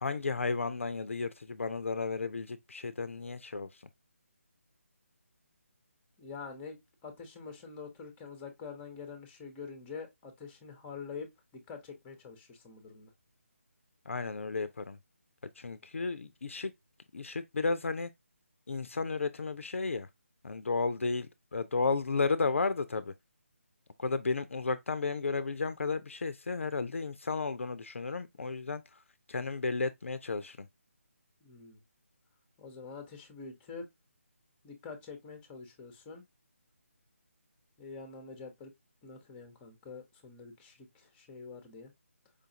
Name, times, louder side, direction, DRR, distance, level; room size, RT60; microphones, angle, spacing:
voice 1, 0.0-3.8 14.1-15.0 15.6-16.7 17.1-18.1 18.7-20.1 20.4-23.1 24.0-29.0 29.3-30.7, left 4 dB, 65° left, 0.5 m, -33 dB
voice 2, 6.2-13.1 31.4-31.8 32.6-33.9 34.6-36.2 37.8-38.7 39.0-41.9, left 5 dB, 15° left, 0.8 m, -46 dB
4.9 x 2.4 x 2.8 m
figure-of-eight pair, 150°, 8 cm